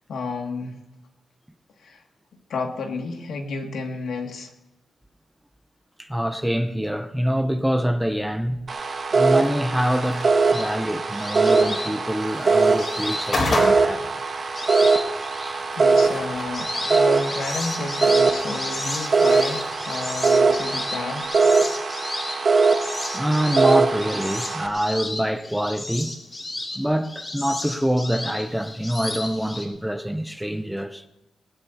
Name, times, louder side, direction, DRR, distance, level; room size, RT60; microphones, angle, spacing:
voice 1, 0.1-0.8 1.8-2.0 2.5-4.5 15.7-21.3, left 3 dB, 80° left, 2.2 m, -31 dB
voice 2, 6.0-8.7 9.1-14.0 23.1-26.2 26.7-31.1, equal, ahead, 0.7 m, -25 dB
sound 1, 8.7-24.7, right 4 dB, 40° right, 1.2 m, -22 dB
sound 2, 9.2-21.2, left 2 dB, 45° left, 3.3 m, -35 dB
sound 3, 10.5-14.0 14.5-15.6 16.1-29.6, left 2 dB, 25° left, 2.5 m, -33 dB
19.5 x 19.5 x 2.8 m
wide cardioid pair, 125°, 0 cm